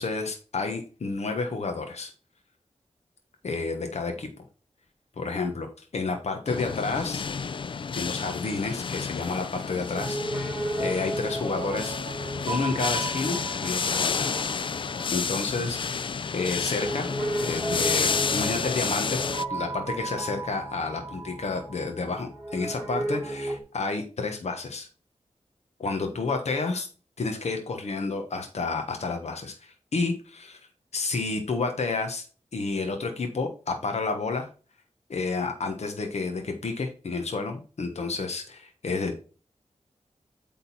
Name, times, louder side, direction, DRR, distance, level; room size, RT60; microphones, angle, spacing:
voice 1, 0.0-2.1 3.4-4.4 5.2-7.2 8.0-11.9 12.4-14.4 15.1-17.1 17.4-24.9 25.8-26.9 27.2-30.6 30.9-32.2 32.5-34.5 35.1-39.2, left 3 dB, 70° left, 4 dB, 1.3 m, -30 dB
sound 1, 6.5-19.4, left 5 dB, 45° left, 0.3 m, -30 dB
Piano, 9.9-23.6, right 2 dB, 15° right, 3.2 m, -34 dB
8.5 x 3.8 x 4.2 m, 0.36 s
wide cardioid pair, 110°, 12 cm